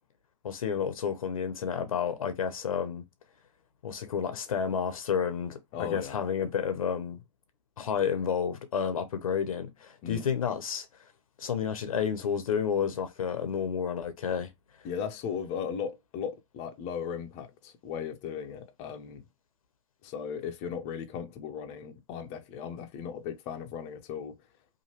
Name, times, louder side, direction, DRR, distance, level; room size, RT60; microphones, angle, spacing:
voice 1, 0.4-3.0 3.8-7.2 7.8-10.9 11.4-14.5, left 7 dB, 80° left, 0.7 m, -30 dB
voice 2, 5.7-6.2 10.0-10.3 14.8-19.2 20.0-24.4, left 7 dB, 35° left, 0.6 m, -37 dB
2.8 x 2.5 x 2.9 m
hypercardioid pair, 120°, 17 cm